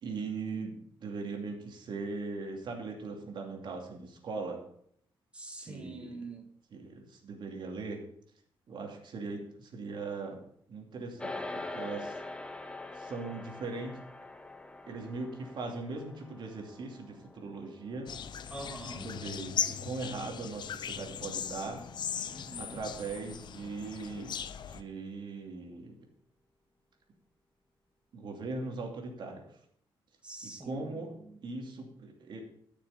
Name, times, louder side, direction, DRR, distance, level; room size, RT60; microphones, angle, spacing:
voice 1, 0.0-4.6 5.6-6.2 6.7-8.0 8.7-10.4 10.7-12.2 12.9-14.0 14.9-18.1 19.0-21.8 22.6-24.4 24.7-26.0 28.1-29.4 30.6-31.1 31.4-32.4, right 3 dB, 55° right, 2 dB, 2.7 m, -39 dB
voice 2, 5.3-6.5 18.5-19.1 22.3-22.8 30.2-31.5, right 2 dB, 10° right, 4 dB, 1.7 m, -45 dB
sound 1, 11.2-20.7, left 2 dB, 10° left, 0.7 m, -45 dB
sound 2, 18.1-24.8, left 8 dB, 55° left, 0.7 m, -38 dB
13.5 x 6.7 x 5.8 m, 0.65 s
wide cardioid pair, 155°, 9 cm